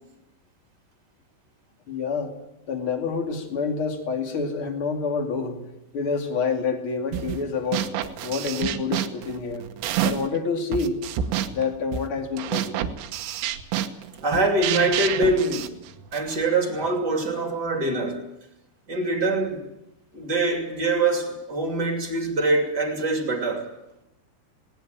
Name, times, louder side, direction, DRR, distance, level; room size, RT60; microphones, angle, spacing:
voice 1, 1.9-2.3 2.7-5.6 5.9-7.9 8.2-9.6 10.0-11.0 11.5-12.6, left 5 dB, 35° left, 2.3 m, -27 dB
sound 1, 7.1-7.4 7.7-10.4 10.7-16.4, right 10 dB, 80° right, 3.7 m, -29 dB
voice 2, 14.2-15.7 16.1-18.2 18.9-19.7 20.1-23.7, right 2 dB, 30° right, 2.2 m, -24 dB
19.0 x 18.5 x 9.2 m
omnidirectional pair, 5.7 m